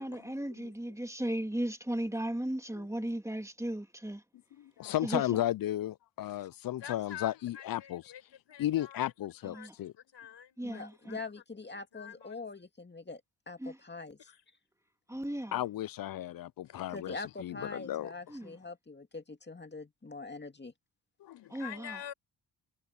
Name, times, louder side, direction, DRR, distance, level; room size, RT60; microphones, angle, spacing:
voice 1, 0.0-4.2 5.0-5.2 9.4-9.7 10.6-11.2 13.6-13.8 15.1-15.6 18.3-18.6 21.5-22.0, right 1 dB, 5° right, 2.5 m, -36 dB
voice 2, 4.6-8.0 8.6-9.9 15.5-18.1 21.2-21.5, left 13 dB, 50° left, 0.5 m, -34 dB
voice 3, 6.8-9.1 9.5-11.2 11.9-12.4 14.2-14.4 16.6-16.9 21.6-22.1, left 9 dB, 70° left, 6.0 m, -47 dB
voice 4, 10.6-13.2 13.5-14.2 16.9-20.7, left 3 dB, 25° left, 2.4 m, -43 dB
cardioid pair, 70°, 45 cm